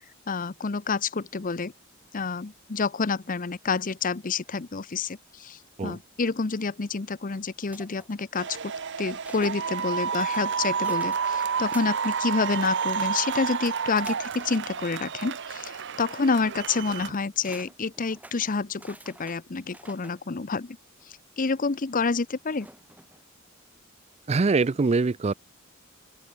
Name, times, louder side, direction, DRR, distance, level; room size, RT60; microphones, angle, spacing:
voice 1, 0.3-1.7 2.1-8.7 9.0-20.8 21.0-22.7, left 4 dB, 40° left, 0.7 m, -28 dB
sound 1, 7.7-9.6 10.0-12.2 12.5-13.4 14.0-15.5 15.8-16.0 17.0-17.1 17.4-20.2 21.0-21.1 22.5-23.2, right 1 dB, 5° right, 4.4 m, -48 dB
sound 2, 8.4-17.1, right 6 dB, 60° right, 1.0 m, -30 dB
voice 2, 24.3-25.3, right 4 dB, 30° right, 0.4 m, -23 dB
open air
head